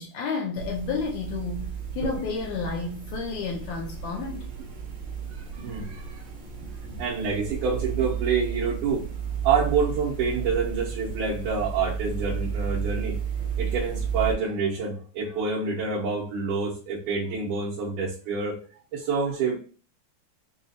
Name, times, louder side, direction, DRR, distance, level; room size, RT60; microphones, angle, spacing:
voice 1, 0.0-4.4, left 4 dB, 85° left, 1.6 m, -31 dB
sound 1, 0.6-14.3, right 7 dB, 60° right, 1.4 m, -33 dB
voice 2, 5.5-6.2 6.9-9.0 9.4-13.2 13.6-18.6 18.9-19.6, right 5 dB, 80° right, 2.4 m, -27 dB
6.0 x 2.4 x 2.8 m
omnidirectional pair, 3.7 m